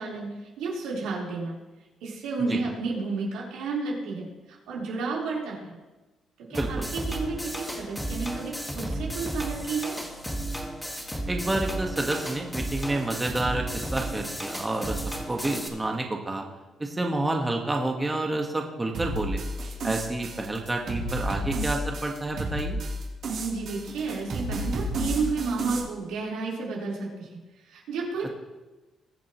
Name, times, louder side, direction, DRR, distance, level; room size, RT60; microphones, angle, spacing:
voice 1, 0.0-1.5 2.0-5.8 6.5-10.0 23.4-27.3 27.6-28.3, right 4 dB, 90° right, -5 dB, 4.3 m, -31 dB
sound 1, 6.5-15.7, right 1 dB, 5° left, 1.8 m, -33 dB
voice 2, 6.5-6.9 11.3-15.0 15.3-16.4 16.8-19.4 19.8-22.8, right 2 dB, 15° right, 1 dB, 1.6 m, -29 dB
sound 2, 18.9-25.8, right 1 dB, 65° right, 3.4 m, -32 dB
21.5 x 7.4 x 3.2 m, 1.1 s
cardioid pair, 90°, 0 cm